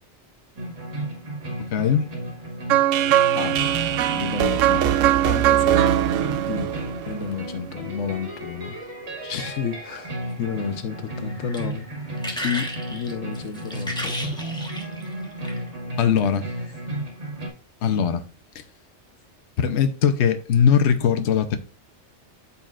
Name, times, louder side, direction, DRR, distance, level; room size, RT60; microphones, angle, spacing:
sound 1, 0.6-17.5, right 1 dB, 65° right, 2.2 m, -34 dB
voice 1, 1.7-2.1 16.0-16.5 17.8-18.2 19.6-21.6, left 7 dB, 65° left, 1.0 m, -20 dB
sound 2, 2.7-7.7, right 12 dB, 85° right, 0.9 m, -21 dB
voice 2, 4.1-6.1 6.5-6.7 7.1-8.7 9.2-12.1 12.4-14.4, left 7 dB, 90° left, 1.2 m, -31 dB
sound 3, 11.1-15.7 16.5-16.7, equal, 5° left, 1.1 m, -34 dB
13.0 x 4.3 x 2.5 m
omnidirectional pair, 1.3 m